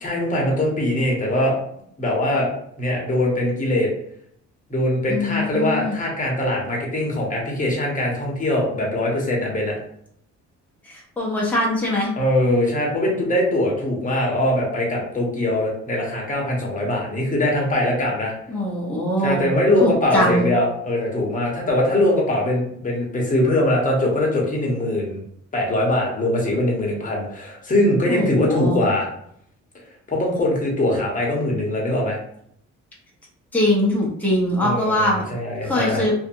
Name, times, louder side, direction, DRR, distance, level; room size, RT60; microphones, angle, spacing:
voice 1, 0.0-1.5 2.0-2.5 2.8-3.9 4.7-9.8 12.2-18.3 19.2-25.2 25.5-29.1 30.1-32.2 34.6-36.0, left 1 dB, 25° left, -2 dB, 1.1 m, -22 dB
voice 2, 5.1-6.0 10.8-12.1 18.5-19.5 19.8-20.5 28.1-28.8 33.5-35.2 35.6-36.1, left 1 dB, 5° left, -4 dB, 0.8 m, -22 dB
2.7 x 2.5 x 2.5 m, 0.69 s
cardioid pair, 90°, 30 cm